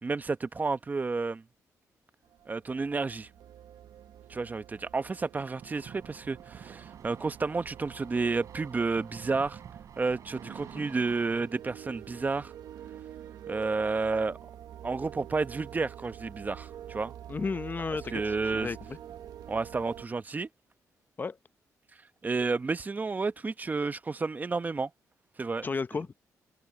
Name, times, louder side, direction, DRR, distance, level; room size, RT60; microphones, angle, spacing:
voice 1, 0.0-1.4 2.5-3.3 4.3-9.6 10.0-12.5 13.5-14.4 14.8-17.1 18.1-18.7 19.5-20.5 22.2-24.9 25.4-25.7, right 4 dB, 25° right, 0.8 m, -31 dB
sound 1, 2.2-20.1, right 10 dB, 85° right, 1.1 m, -47 dB
sound 2, 5.6-11.4, right 8 dB, 60° right, 3.2 m, -49 dB
voice 2, 17.3-19.0 21.2-21.4 25.6-26.1, left 4 dB, 30° left, 0.7 m, -33 dB
cardioid pair, 105°, 6 cm